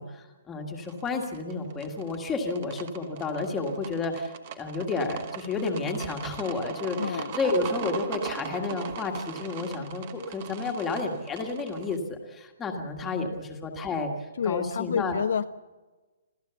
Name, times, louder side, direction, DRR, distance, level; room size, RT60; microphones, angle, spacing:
voice 1, 0.0-14.1 14.4-15.2, left 3 dB, 10° left, 2 dB, 1.7 m, -31 dB
sound 1, 0.8-12.0, right 8 dB, 25° right, 1.1 m, -40 dB
voice 2, 7.0-7.4 13.2-13.4 14.4-15.4, left 7 dB, 50° left, 10 dB, 0.6 m, -29 dB
27.0 x 15.5 x 7.0 m, 1.2 s
hypercardioid pair, 180°, 0 cm